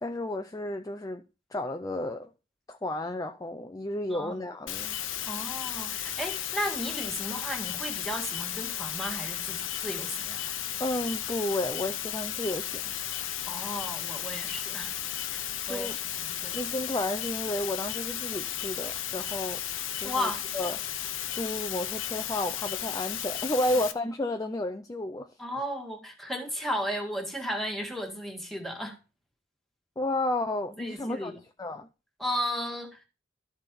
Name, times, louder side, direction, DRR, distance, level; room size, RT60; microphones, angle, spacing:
voice 1, 0.0-1.2 1.5-2.3 2.7-5.0 10.8-12.9 15.7-16.0 16.5-19.6 20.0-20.8 21.3-25.3 25.6-25.7 30.0-31.3 31.6-31.9, left 1 dB, 20° left, 0.5 m, -32 dB
sound 1, 4.7-23.9, left 11 dB, 80° left, 0.8 m, -34 dB
voice 2, 5.3-10.4 13.5-14.9 15.3-16.6 20.0-20.4 25.4-28.9 30.8-31.4 32.2-33.0, equal, ahead, 1.8 m, -34 dB
13.0 x 4.3 x 5.2 m
head